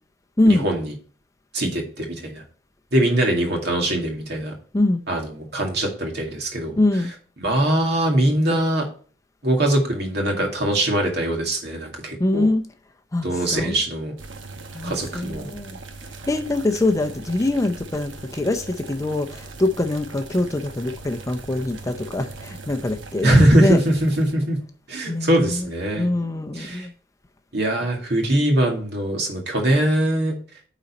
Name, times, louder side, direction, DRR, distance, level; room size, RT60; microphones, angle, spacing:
voice 1, 0.5-0.9 1.5-2.4 2.9-4.5 5.1-6.8 7.0-7.1 7.4-8.9 9.4-12.5 13.2-14.1 14.8-15.5 23.2-24.6 24.9-26.1 26.5-26.9 27.5-30.4, right 1 dB, 60° right, 2.1 m, -22 dB
voice 2, 6.8-7.1 12.2-12.7 13.1-13.8 14.7-15.8 16.3-23.8 25.1-25.7 25.9-26.9, left 2 dB, 15° left, 0.5 m, -23 dB
sound 1, 14.2-24.4, right 3 dB, 85° right, 1.0 m, -40 dB
8.9 x 4.1 x 4.2 m
head